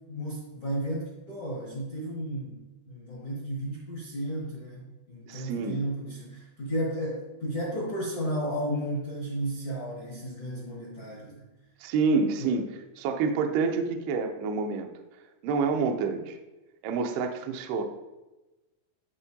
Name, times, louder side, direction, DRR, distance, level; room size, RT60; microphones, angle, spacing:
voice 1, 0.1-4.8 5.1-11.5 12.4-12.5, right 1 dB, 80° left, -5 dB, 1.3 m, -33 dB
voice 2, 5.3-5.8 11.8-14.9 15.4-16.4 16.8-17.8, right 4 dB, 85° right, 5 dB, 2.2 m, -28 dB
13.0 x 4.4 x 2.8 m, 1.1 s
omnidirectional pair, 5.4 m